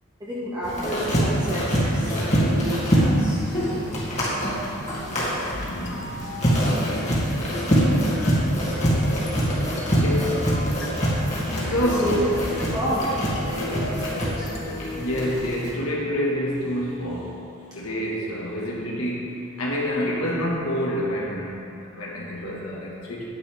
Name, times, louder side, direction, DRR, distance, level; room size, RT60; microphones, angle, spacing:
voice 1, 0.2-4.0 8.4-9.0 11.6-15.4 18.6-18.8 22.4-22.6, equal, 20° right, -10 dB, 1.7 m, -31 dB
sound 1, 0.6-15.7, equal, 35° left, 2.2 m, -24 dB
sound 2, 5.5-15.8, left 1 dB, 60° left, 1.1 m, -38 dB
voice 2, 5.6-6.2 6.6-7.2 9.8-10.6 11.6-12.2 14.9-17.4 17.7-23.2, equal, 85° left, -4 dB, 1.5 m, -28 dB
9.7 x 9.6 x 3.4 m, 2.6 s
head